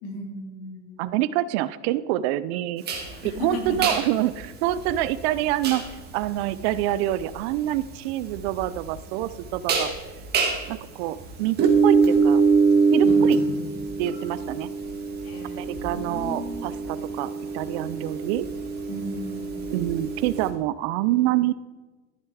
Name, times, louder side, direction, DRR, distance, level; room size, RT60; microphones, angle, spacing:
voice 1, 0.0-1.2 3.0-3.9 13.0-13.7 15.2-16.7 18.9-19.9, equal, 45° left, 0 dB, 3.3 m, -37 dB
voice 2, 1.0-2.8 3.2-9.9 10.7-12.4 12.9-13.4 14.0-14.7 15.6-18.5 19.7-21.5, right 14 dB, 65° right, 16 dB, 0.5 m, -26 dB
sound 1, 2.8-20.5, right 5 dB, 30° right, 1.8 m, -25 dB
14.0 x 6.7 x 4.8 m, 1.2 s
supercardioid pair, 155°, 34 cm